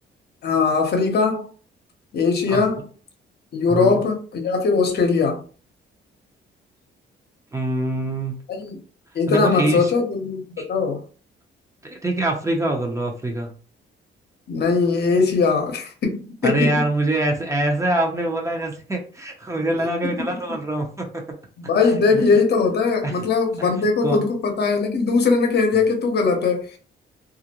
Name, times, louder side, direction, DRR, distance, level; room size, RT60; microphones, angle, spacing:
voice 1, 0.4-1.5 2.1-2.8 3.5-5.4 8.5-8.8 9.1-11.0 14.5-16.9 20.2-20.3 21.6-26.8, left 4 dB, 55° left, 0.8 m, -20 dB
voice 2, 3.7-4.0 7.5-8.4 9.3-9.9 10.6-10.7 11.8-13.5 16.4-21.2 22.1-22.2 23.0-23.1 23.6-24.2, right 1 dB, 15° right, 0.6 m, -24 dB
2.4 x 2.1 x 2.8 m
cardioid pair, 90°, 20 cm